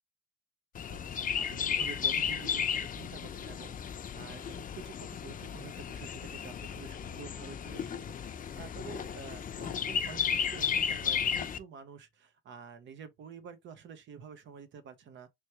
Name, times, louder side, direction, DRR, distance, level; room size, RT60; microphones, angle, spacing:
Chirp tweet, 0.7-11.6, left 7 dB, 45° left, 0.5 m, -34 dB
voice 1, 0.9-15.3, right 6 dB, 70° right, 0.8 m, -49 dB
3.4 x 3.1 x 2.9 m
cardioid pair, 90°, 20 cm